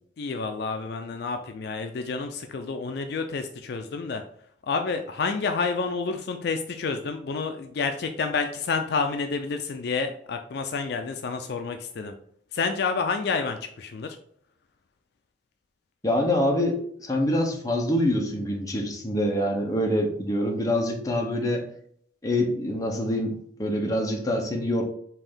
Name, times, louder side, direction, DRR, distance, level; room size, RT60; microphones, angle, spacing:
voice 1, 0.2-4.2 4.7-12.1 12.5-14.2, left 4 dB, 60° left, 6 dB, 0.4 m, -29 dB
voice 2, 16.0-21.7 22.2-24.8, left 1 dB, 20° left, 1 dB, 0.8 m, -25 dB
5.5 x 2.6 x 3.5 m, 0.65 s
head